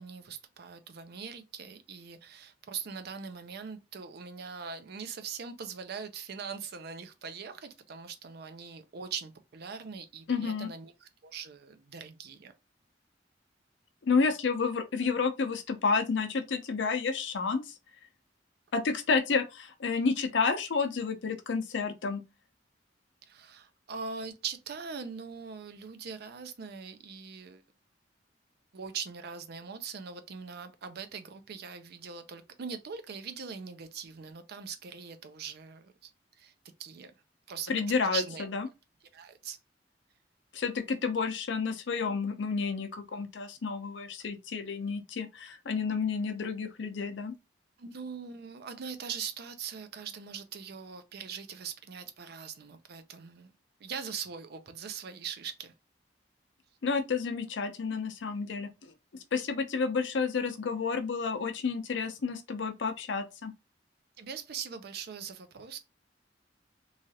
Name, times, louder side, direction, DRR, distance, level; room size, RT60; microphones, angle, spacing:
voice 1, 0.0-12.5 23.3-27.6 28.7-36.5 36.8-37.1 37.5-37.7 38.1-38.5 39.1-39.6 47.8-53.5 53.8-55.7 64.2-65.8, right 6 dB, 60° right, 0.5 m, -41 dB
voice 2, 10.3-10.7 14.1-17.7 18.7-22.2 37.7-38.7 40.5-47.3 56.8-58.9 59.3-63.5, left 5 dB, 75° left, 0.5 m, -30 dB
3.2 x 2.4 x 2.7 m
head